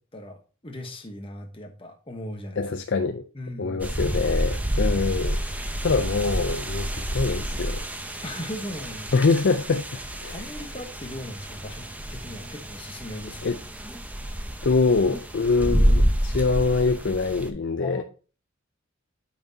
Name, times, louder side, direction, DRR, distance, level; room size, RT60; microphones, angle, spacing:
voice 1, 0.1-2.7 3.3-4.0 8.2-9.1 10.3-13.6 17.8-18.0, left 1 dB, 25° left, 1.1 m, -38 dB
voice 2, 2.6-3.2 3.6-5.4 5.8-7.8 9.1-10.4 13.4-13.6 14.6-18.0, left 4 dB, 60° left, 0.5 m, -24 dB
sound 1, 3.8-17.5, equal, 10° right, 0.7 m, -28 dB
8.8 x 6.0 x 2.8 m
head